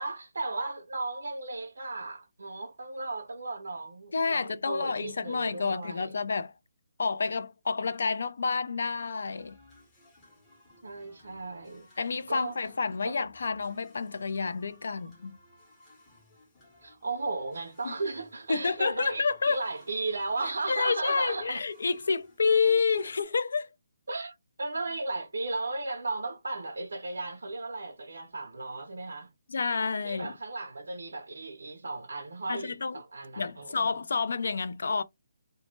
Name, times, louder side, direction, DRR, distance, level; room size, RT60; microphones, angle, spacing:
voice 1, 0.0-6.2 10.8-11.9 12.3-12.7 13.0-13.2 16.8-21.6 24.1-29.3 30.0-33.8, right 3 dB, 85° right, 0.5 m, -35 dB
voice 2, 4.1-6.5 7.0-9.6 12.0-15.4 17.8-17.9 18.5-19.6 20.7-23.7 29.5-30.3 32.5-33.0 33.4-35.0, left 4 dB, 65° left, 0.3 m, -29 dB
sound 1, 8.8-23.2, left 1 dB, 15° left, 0.7 m, -59 dB
2.1 x 2.0 x 3.0 m
hypercardioid pair, 170°, 0 cm